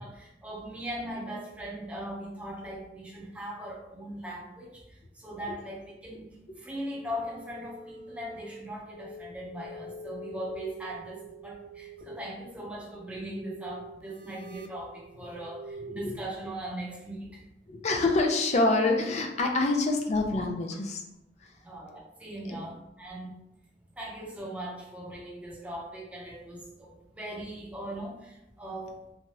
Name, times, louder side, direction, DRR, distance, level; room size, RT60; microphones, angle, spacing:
voice 1, 0.0-4.7 5.2-6.3 6.6-17.3 21.6-23.4 24.0-28.9, right 1 dB, 10° right, -4 dB, 0.6 m, -39 dB
sound 1, 6.8-16.0, right 1 dB, 60° right, 0.3 m, -46 dB
voice 2, 15.8-16.2 17.7-21.0 22.5-22.6, left 2 dB, 40° left, 2 dB, 0.4 m, -26 dB
3.1 x 2.3 x 2.8 m, 0.88 s
head